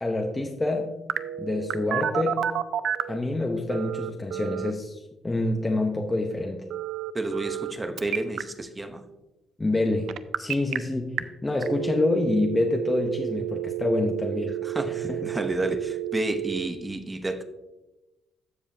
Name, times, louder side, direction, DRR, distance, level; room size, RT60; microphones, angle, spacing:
voice 1, 0.0-0.9 1.4-2.4 3.1-6.6 9.6-10.1 10.4-14.6 14.8-15.3, left 2 dB, 20° left, 2 dB, 0.8 m, -27 dB
Telephone, 1.1-3.2 3.7-4.7 6.7-7.7 8.0-8.4 10.1-10.8 11.2-11.3 11.6-16.7, right 12 dB, 70° right, 0.4 m, -30 dB
voice 2, 7.1-9.0 14.6-17.4, right 2 dB, 20° right, 8 dB, 0.9 m, -30 dB
14.5 x 4.9 x 2.7 m, 1.0 s
cardioid pair, 90°, 0 cm